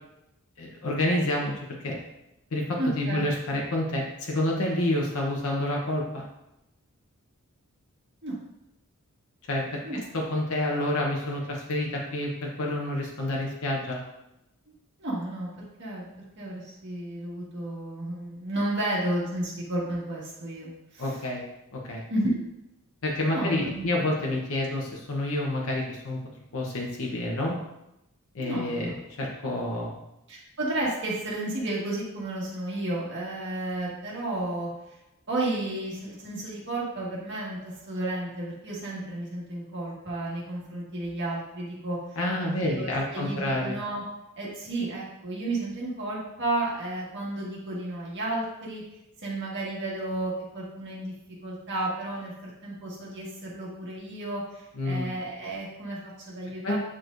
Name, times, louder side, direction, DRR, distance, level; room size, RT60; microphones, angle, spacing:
voice 1, 0.6-2.0 2.5-6.2 9.5-9.8 10.1-14.0 21.0-21.4 21.7-22.0 23.0-26.2 26.5-27.6 28.3-28.9 29.2-30.0 42.2-43.8 54.7-55.1 56.6-56.8, left 1 dB, 65° left, -1 dB, 0.9 m, -28 dB
voice 2, 2.8-3.3 8.2-8.4 9.8-10.0 15.0-15.5 15.8-21.2 22.1-22.4 23.3-23.9 28.4-28.9 30.3-34.7 35.3-42.0 42.4-44.0 44.4-48.8 49.2-51.1 51.4-56.8, right 1 dB, 55° right, -5 dB, 1.7 m, -32 dB
8.8 x 4.6 x 2.6 m, 0.89 s
head